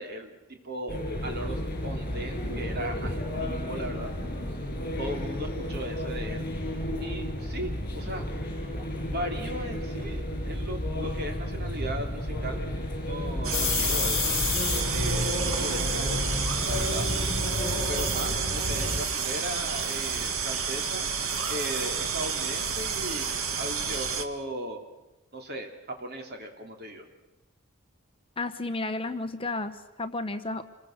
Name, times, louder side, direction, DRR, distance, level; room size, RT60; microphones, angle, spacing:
voice 1, 0.0-4.1 5.0-6.5 7.0-8.3 9.1-12.7 13.0-14.4 14.9-16.3 16.6-17.1 17.9-21.1 21.5-24.8 25.3-27.1, right 1 dB, 45° right, 4 dB, 3.3 m, -37 dB
sound 1, 0.9-19.0, left 1 dB, 40° left, 6.9 m, -32 dB
sound 2, 13.4-24.2, right 6 dB, 70° right, 1.8 m, -30 dB
sound 3, 13.5-14.8 16.6-17.6 19.8-20.3, left 17 dB, 70° left, 0.8 m, -32 dB
voice 2, 28.4-30.6, left 2 dB, 25° left, 9 dB, 1.0 m, -32 dB
27.5 x 21.5 x 6.6 m, 1.0 s
head